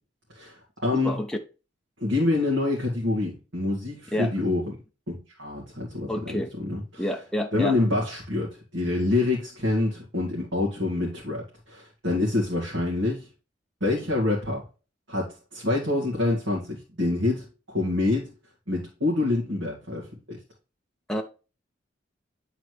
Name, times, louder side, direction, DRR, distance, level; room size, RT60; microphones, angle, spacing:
voice 1, 0.3-1.2 2.0-4.6 5.1-7.1 7.5-8.5 8.7-13.3 13.8-14.6 15.1-18.3 18.7-20.0 20.3-20.4, left 2 dB, 85° right, -4 dB, 2.0 m, -26 dB
voice 2, 1.0-1.4 4.1-4.3 6.1-6.5 7.0-7.8 21.1-21.2, left 1 dB, 5° left, 3 dB, 0.5 m, -28 dB
9.4 x 4.0 x 3.2 m, 0.33 s
head